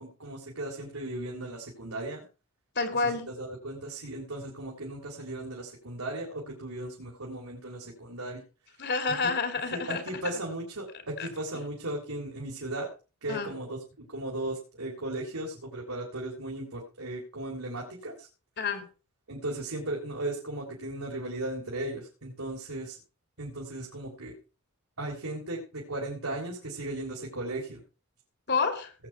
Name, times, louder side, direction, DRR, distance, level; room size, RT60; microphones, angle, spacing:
voice 1, 0.0-2.2 2.9-8.4 9.7-12.9 13.2-18.3 19.3-23.0 23.4-24.3 25.0-27.8, right 2 dB, 70° right, -2 dB, 3.8 m, -36 dB
voice 2, 2.8-3.3 8.8-10.2 11.2-11.3 11.5-11.6 13.3-13.5 18.6-18.8 28.5-28.9, left 4 dB, 50° left, 8 dB, 2.6 m, -29 dB
18.5 x 8.3 x 4.6 m, 0.33 s
head